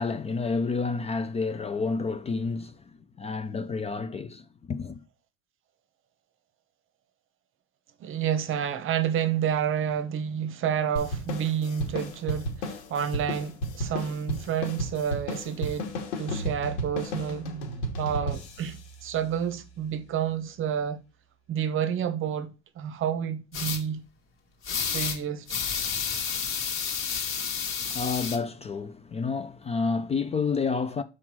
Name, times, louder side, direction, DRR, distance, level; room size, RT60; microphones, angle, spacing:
voice 1, 0.0-2.8 3.2-5.0 27.8-31.0, left 4 dB, 20° left, 0.5 m, -29 dB
voice 2, 8.0-17.5 18.0-21.0 21.5-24.0 24.9-25.5, right 8 dB, 40° right, 0.9 m, -29 dB
sound 1, 11.0-19.8, equal, 75° left, 2.4 m, -34 dB
sound 2, 23.5-23.8 24.6-25.2 25.5-28.4, left 6 dB, 40° left, 1.5 m, -30 dB
5.8 x 4.8 x 4.6 m
supercardioid pair, 115°, 34 cm